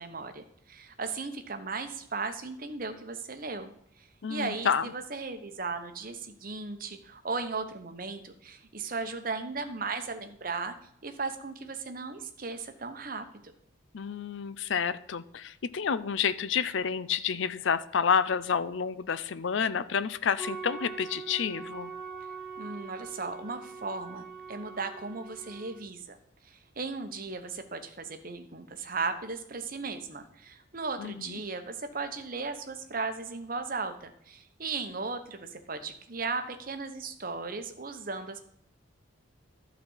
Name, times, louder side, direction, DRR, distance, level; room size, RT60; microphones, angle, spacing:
voice 1, 0.0-10.7 11.0-13.3 22.6-26.2 26.4-38.4, right 4 dB, 45° right, 8 dB, 0.9 m, -36 dB
voice 2, 4.2-4.9 13.9-21.9 31.0-31.3, left 6 dB, 65° left, 15 dB, 0.5 m, -29 dB
sound 1, 20.4-25.8, right 5 dB, ahead, 1.8 m, -42 dB
11.5 x 4.2 x 7.2 m, 0.71 s
head